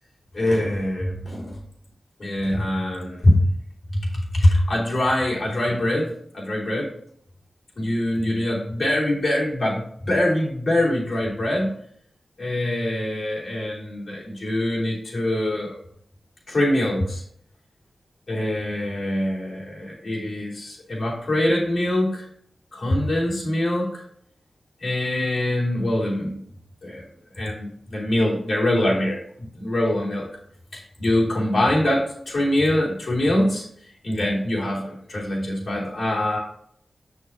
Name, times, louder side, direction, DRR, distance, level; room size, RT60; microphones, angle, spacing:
voice 1, 0.3-1.6 2.2-3.5 3.9-6.9 7.8-11.7 12.4-15.8 16.5-17.2 18.3-22.2 22.7-24.0 24.8-26.3 26.8-27.0 27.3-30.3 30.7-33.6 34.0-36.4, left 1 dB, 70° left, -5 dB, 3.0 m, -23 dB
6.7 x 6.5 x 2.8 m, 0.64 s
cardioid pair, 40°, 0 cm